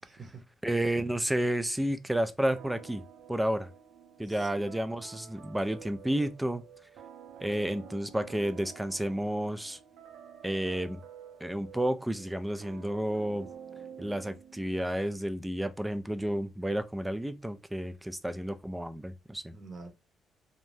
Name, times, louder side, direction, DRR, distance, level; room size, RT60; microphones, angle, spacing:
voice 1, 0.0-0.4 4.2-5.0 19.5-19.9, right 3 dB, 50° right, 0.8 m, -48 dB
voice 2, 0.6-3.0 3.3-3.7 4.2-6.6 7.4-9.8 10.4-11.0 11.4-13.5 14.0-19.5, right 1 dB, 5° right, 0.3 m, -31 dB
sound 1, 2.6-14.9, right 8 dB, 90° right, 0.6 m, -50 dB
2.6 x 2.1 x 3.2 m
cardioid pair, 90°, 0 cm